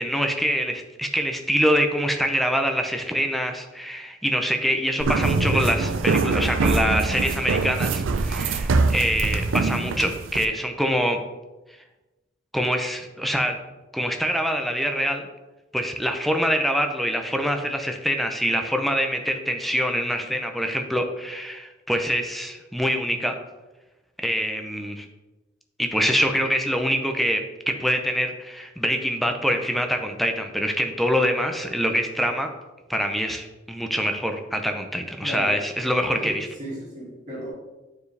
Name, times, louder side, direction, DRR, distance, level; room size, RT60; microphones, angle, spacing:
voice 1, 0.0-11.2 12.5-13.6 13.9-15.2 15.7-23.3 24.2-25.1 25.8-32.5 32.9-36.5, equal, ahead, 4 dB, 0.5 m, -25 dB
sound 1, 5.0-10.4, right 3 dB, 75° right, 0.5 m, -23 dB
voice 2, 35.2-35.6 36.1-36.3 36.6-37.5, equal, 40° right, -7 dB, 2.3 m, -34 dB
9.4 x 4.7 x 3.3 m, 1.1 s
head